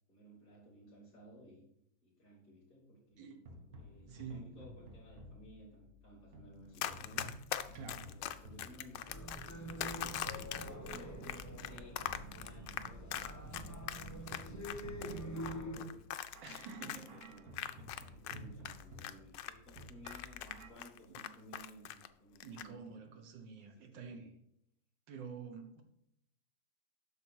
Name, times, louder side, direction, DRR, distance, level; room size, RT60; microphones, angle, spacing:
voice 1, 0.1-1.6 2.0-3.3 3.8-7.3 8.1-9.2 9.6-13.1 13.4-16.0 16.4-23.0 23.6-23.7 23.9-24.3, right 1 dB, 30° left, -8 dB, 3.1 m, -57 dB
sound 1, 3.1-20.7, equal, 55° right, 1.7 m, -54 dB
voice 2, 4.1-4.6 7.7-8.1 16.4-17.2 17.6-17.8 21.1-21.2 22.4-24.3 25.1-25.8, right 5 dB, 85° right, 6 dB, 1.8 m, -48 dB
Run, 6.8-18.4 18.6-22.1 22.4-22.7, left 12 dB, 80° left, 1.3 m, -41 dB
sound 2, 9.1-15.9, right 1 dB, 15° left, 0.6 m, -45 dB
8.3 x 6.3 x 4.7 m, 0.76 s
omnidirectional pair, 1.9 m